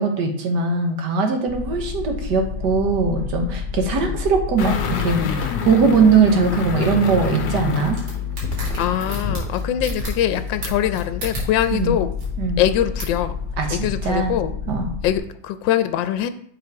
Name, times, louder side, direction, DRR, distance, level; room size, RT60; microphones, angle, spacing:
voice 1, 0.0-8.0 11.7-12.0 12.4-12.6 13.6-14.3 14.7-14.9, right 4 dB, 70° right, 4 dB, 1.6 m, -20 dB
sound 1, 1.5-15.2, left 6 dB, 35° right, 2.9 m, -30 dB
sound 2, 4.6-9.5 9.8-9.9, left 5 dB, 65° left, 1.3 m, -28 dB
sound 3, 7.8-11.8 12.1-12.3 13.0-13.2, right 1 dB, 85° right, 2.8 m, -32 dB
voice 2, 8.8-12.1 12.6-13.4 13.7-14.5 15.0-16.3, left 11 dB, 85° left, 11 dB, 1.3 m, -23 dB
6.7 x 5.2 x 4.7 m, 0.64 s
omnidirectional pair, 2.0 m